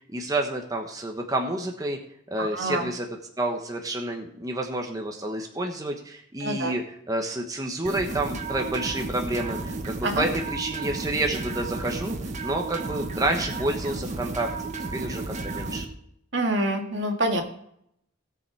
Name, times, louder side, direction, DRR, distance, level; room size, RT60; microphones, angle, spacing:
voice 1, 0.1-2.0 2.3-3.1 3.4-15.8, right 1 dB, 20° right, 2 dB, 1.1 m, -29 dB
voice 2, 2.4-2.9 6.4-6.7 10.0-10.3 16.3-17.4, right 1 dB, 70° right, 3 dB, 2.0 m, -26 dB
sound 1, 7.8-15.9, right 3 dB, 40° right, 1.3 m, -33 dB
18.0 x 6.8 x 4.6 m, 0.73 s
head